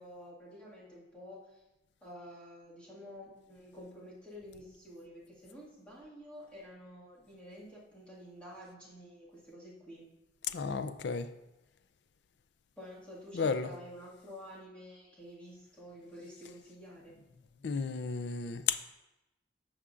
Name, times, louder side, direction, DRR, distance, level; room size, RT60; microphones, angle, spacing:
voice 1, 0.0-1.6 2.0-10.0 12.8-17.1, equal, 5° left, 1.9 m, -50 dB
voice 2, 10.5-11.3 13.3-13.7 17.6-18.8, left 5 dB, 65° left, 0.4 m, -33 dB
14.0 x 5.0 x 2.5 m
head